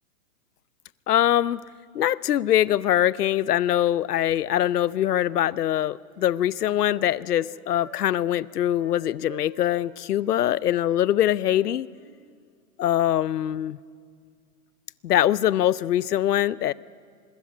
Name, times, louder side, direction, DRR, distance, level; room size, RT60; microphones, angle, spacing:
voice 1, 1.1-1.6 1.9-11.9 12.8-13.8 15.0-16.7, left 12 dB, 85° left, 21 dB, 0.8 m, -23 dB
Wind instrument woodwind instrument, 5.3-5.4 5.7-7.5 7.8-8.0 8.3-8.4 8.8-9.0 9.2-9.9 10.2-12.1, right 5 dB, 30° right, 7.9 m, -49 dB
26.0 x 21.0 x 9.5 m, 2.1 s
hypercardioid pair, 165°, 45 cm